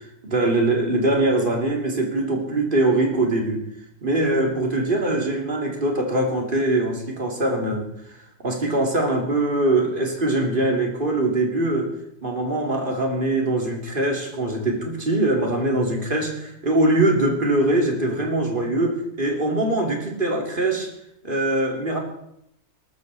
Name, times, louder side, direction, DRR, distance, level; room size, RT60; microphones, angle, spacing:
voice 1, 0.0-3.7 4.0-7.9 8.4-11.9 12.2-20.9 21.2-22.0, right 2 dB, 35° right, 1 dB, 3.0 m, -22 dB
19.0 x 14.0 x 4.1 m, 0.79 s
omnidirectional pair, 1.5 m